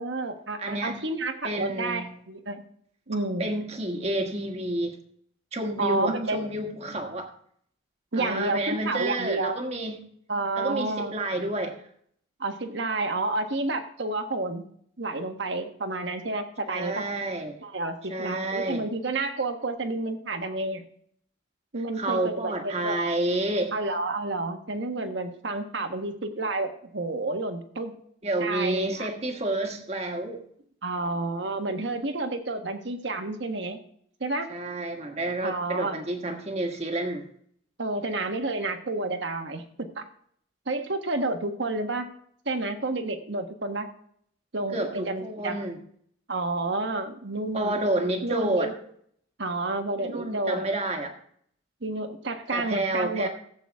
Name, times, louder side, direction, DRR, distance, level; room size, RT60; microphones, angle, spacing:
voice 1, 0.0-2.6 3.1-3.5 5.8-6.4 8.1-9.6 10.3-11.1 12.4-14.6 15.0-17.0 17.6-20.8 21.7-23.1 23.7-27.9 28.4-29.1 30.8-33.8 34.2-34.5 35.4-36.0 37.8-40.0 40.7-42.1 42.4-43.9 44.5-45.7 46.3-47.8 48.2-48.8 49.4-50.6 51.8-53.3, right 2 dB, 65° right, 6 dB, 1.4 m, -30 dB
voice 2, 0.6-1.0 1.4-2.1 3.4-4.9 5.5-7.3 8.1-10.0 10.6-11.8 16.7-17.6 18.1-18.9 22.0-23.7 28.2-30.4 34.5-37.3 44.7-45.8 47.5-48.7 50.0-51.1 52.5-53.3, right 1 dB, 30° right, 4 dB, 1.5 m, -29 dB
16.0 x 8.2 x 3.5 m, 0.65 s
head